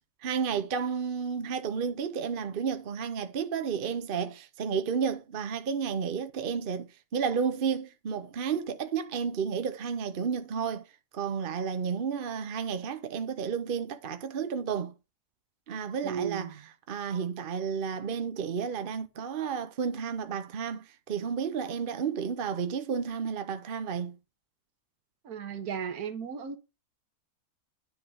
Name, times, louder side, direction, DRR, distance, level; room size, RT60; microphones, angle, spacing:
voice 1, 0.2-10.8 11.1-14.9 15.7-16.5 16.9-24.2, right 6 dB, 45° right, 0.7 m, -32 dB
voice 2, 16.0-16.6 25.2-26.6, right 7 dB, 70° right, 1.6 m, -35 dB
9.8 x 3.8 x 6.2 m
omnidirectional pair, 1.7 m